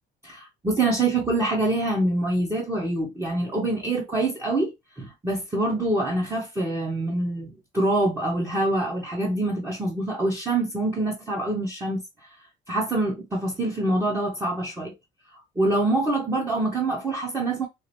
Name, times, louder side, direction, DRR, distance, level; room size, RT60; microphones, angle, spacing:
voice 1, 0.2-14.9 15.3-17.7, right 2 dB, 15° right, 1.0 m, -25 dB
4.7 x 2.0 x 3.0 m
cardioid pair, 110°, 17 cm